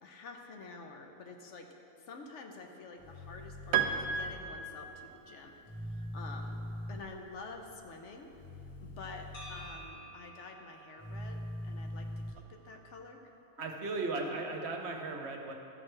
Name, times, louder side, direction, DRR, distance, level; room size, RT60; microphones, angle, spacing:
voice 1, 0.0-1.7 2.1-5.6 5.9-6.6 6.9-8.3 8.8-12.1 12.5-13.2, left 3 dB, 65° left, 3 dB, 1.0 m, -48 dB
sound 1, 3.0-4.3 5.7-7.0 8.3-9.7 11.0-12.3, left 1 dB, 15° left, 0.7 m, -42 dB
Piano, 3.7-5.4, right 7 dB, 85° right, 1.0 m, -33 dB
sound 2, 9.3-13.4, right 1 dB, 90° left, 1.3 m, -53 dB
voice 2, 13.6-15.5, right 3 dB, 60° right, 2 dB, 1.0 m, -36 dB
13.5 x 6.2 x 3.2 m, 2.9 s
omnidirectional pair, 1.4 m